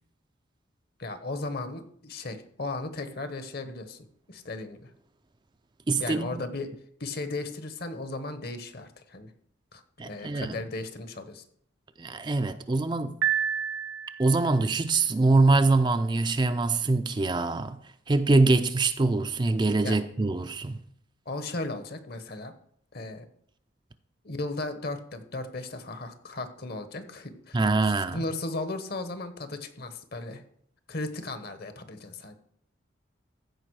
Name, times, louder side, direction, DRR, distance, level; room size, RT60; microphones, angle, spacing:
voice 1, 1.0-4.9 6.0-6.7 7.0-9.3 9.7-11.4 19.8-20.0 21.3-22.5 22.9-23.3 24.2-30.4 30.9-32.3, left 2 dB, 55° left, 1.1 m, -36 dB
voice 2, 5.9-6.4 10.0-10.6 12.0-13.2 14.2-17.8 18.1-20.8 27.5-28.2, right 3 dB, 25° right, 0.4 m, -24 dB
Piano, 13.2-14.5, right 8 dB, 70° right, 0.9 m, -29 dB
14.5 x 5.2 x 4.7 m
head